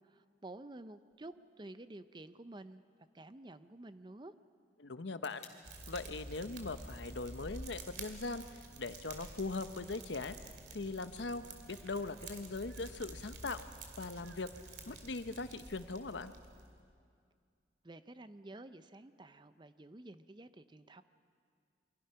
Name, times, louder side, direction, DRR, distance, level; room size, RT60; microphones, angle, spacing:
voice 1, 0.0-2.8 3.1-4.3 17.8-21.0, right 2 dB, 25° right, 12 dB, 0.6 m, -51 dB
sound 1, 1.1-9.1, left 6 dB, 40° left, 2.9 m, -66 dB
voice 2, 4.8-5.5 5.9-10.4 10.7-13.6 14.0-14.5 14.9-16.3, left 3 dB, 80° left, 11 dB, 0.9 m, -40 dB
Fire, 5.6-16.8, right 2 dB, 70° right, 2.6 m, -50 dB
Breathing, 11.5-15.2, right 3 dB, 85° right, 3.9 m, -67 dB
28.5 x 23.5 x 5.7 m, 2.2 s
head